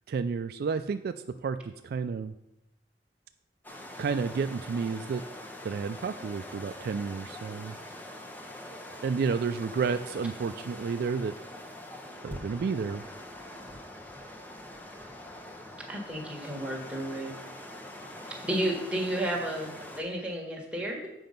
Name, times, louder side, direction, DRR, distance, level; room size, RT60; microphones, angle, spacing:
voice 1, 0.1-1.1 1.4-1.6 1.8-2.3 4.0-5.2 5.6-7.8 9.0-11.3 12.2-13.0, right 5 dB, 60° right, 10 dB, 0.3 m, -31 dB
sound 1, 3.6-20.0, left 1 dB, 10° left, 0.9 m, -44 dB
voice 2, 15.9-17.3 18.3-21.1, right 1 dB, 5° right, -2 dB, 1.6 m, -32 dB
7.7 x 5.4 x 5.2 m, 0.86 s
head